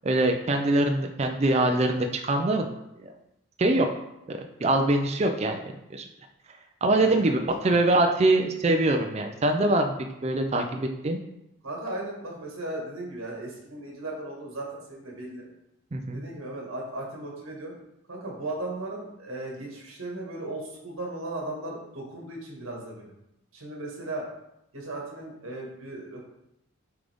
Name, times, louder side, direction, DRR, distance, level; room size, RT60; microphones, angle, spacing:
voice 1, 0.0-2.7 3.0-3.1 3.6-3.9 4.3-5.6 5.9-6.0 6.8-9.9 10.2-11.2 15.9-16.2, right 2 dB, 30° right, 4 dB, 0.4 m, -23 dB
voice 2, 7.0-7.8 11.6-15.5 16.1-17.7 18.1-23.1 23.5-24.3 24.7-26.3, right 2 dB, 75° right, -1 dB, 1.7 m, -36 dB
7.0 x 3.8 x 3.5 m, 0.85 s
head